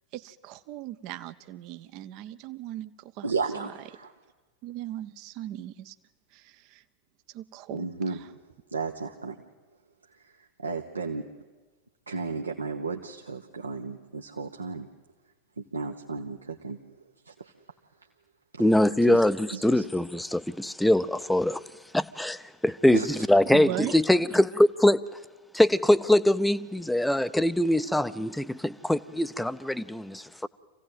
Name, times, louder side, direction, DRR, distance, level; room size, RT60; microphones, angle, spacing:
voice 1, 0.1-3.7 4.6-5.9 6.3-6.8 7.3-8.3 23.5-24.0, right 13 dB, 40° right, 0.7 m, -38 dB
voice 2, 3.2-4.1 7.7-8.2 8.7-9.4 10.6-11.2 12.1-14.9 15.7-16.8 19.1-19.2 19.5-19.9 22.9-23.1, right 4 dB, 75° right, 1.0 m, -33 dB
voice 3, 18.6-21.6 21.9-25.0 25.5-30.5, left 1 dB, 5° left, 0.6 m, -23 dB
25.5 x 16.5 x 9.3 m
figure-of-eight pair, 90°, 0 cm